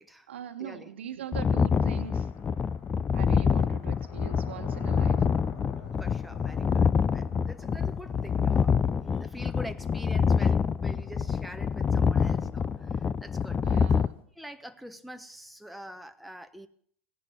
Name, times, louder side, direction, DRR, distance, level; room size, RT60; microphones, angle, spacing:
voice 1, 0.3-2.3 3.1-5.2 13.6-14.1, right 8 dB, 80° right, 8 dB, 1.4 m, -41 dB
sound 1, 1.2-14.2, left 5 dB, 60° left, 4.7 m, -48 dB
sound 2, 1.3-14.1, left 6 dB, 25° left, 0.6 m, -26 dB
voice 2, 6.0-14.0 14.4-16.7, equal, ahead, 7 dB, 1.0 m, -45 dB
16.5 x 10.5 x 7.3 m, 0.63 s
hypercardioid pair, 85°, 6 cm